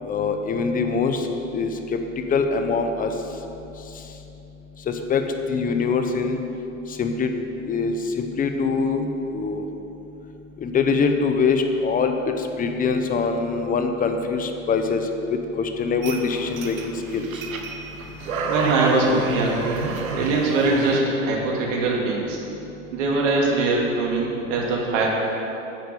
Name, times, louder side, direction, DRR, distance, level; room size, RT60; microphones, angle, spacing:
voice 1, 0.1-1.3 1.5-1.7 2.3-3.1 4.9-5.2 5.5-6.4 7.0-7.3 7.6-9.6 10.6-15.0 15.3-17.3, left 5 dB, 20° left, 6 dB, 0.9 m, -23 dB
sound 1, 16.0-21.0, right 4 dB, 85° right, 1.4 m, -29 dB
voice 2, 18.2-19.7 20.1-22.4 22.9-25.1, right 3 dB, 60° right, -2 dB, 2.5 m, -22 dB
9.8 x 6.4 x 8.3 m, 3.0 s
hypercardioid pair, 120°, 40 cm